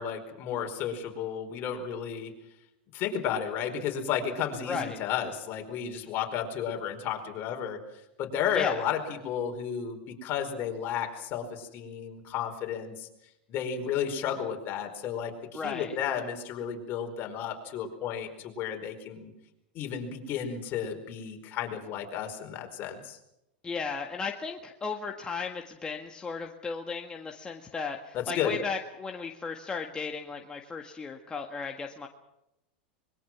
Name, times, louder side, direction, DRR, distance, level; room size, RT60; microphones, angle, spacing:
voice 1, 0.0-2.3 2.9-7.8 8.2-13.1 13.5-19.3 19.7-23.2 28.1-28.5, left 8 dB, 40° left, 4 dB, 4.8 m, -33 dB
voice 2, 4.7-5.0 8.5-8.8 15.5-16.0 23.6-32.1, left 5 dB, 15° left, 2 dB, 1.8 m, -35 dB
25.0 x 22.0 x 6.1 m, 0.84 s
hypercardioid pair, 115°, 5 cm